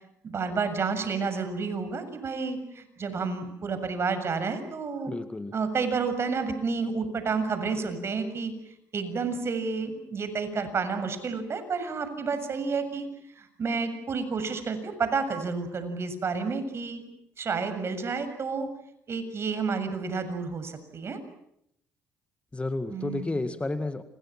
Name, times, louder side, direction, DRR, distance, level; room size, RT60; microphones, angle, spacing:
voice 1, 0.2-5.1 5.5-8.5 8.9-17.0 17.4-18.7 19.1-21.2 22.9-23.4, right 4 dB, 45° right, 10 dB, 7.1 m, -30 dB
voice 2, 5.1-5.5 22.5-24.0, left 2 dB, 20° left, 10 dB, 2.0 m, -31 dB
29.5 x 28.0 x 6.1 m, 0.75 s
cardioid pair, 85°, 6 cm